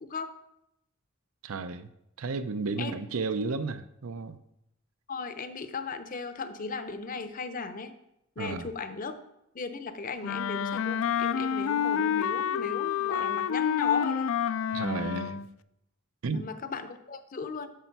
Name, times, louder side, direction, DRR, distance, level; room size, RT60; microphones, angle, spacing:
voice 1, 1.4-1.9 2.2-4.4 8.4-8.7 14.7-15.5 16.2-16.5, right 4 dB, 85° right, 0.6 m, -33 dB
voice 2, 5.1-7.9 8.4-9.2 9.5-14.3 16.3-17.7, left 4 dB, 40° left, 0.6 m, -36 dB
Wind instrument woodwind instrument, 10.2-15.5, left 8 dB, 75° left, 0.3 m, -29 dB
8.3 x 6.7 x 4.6 m
head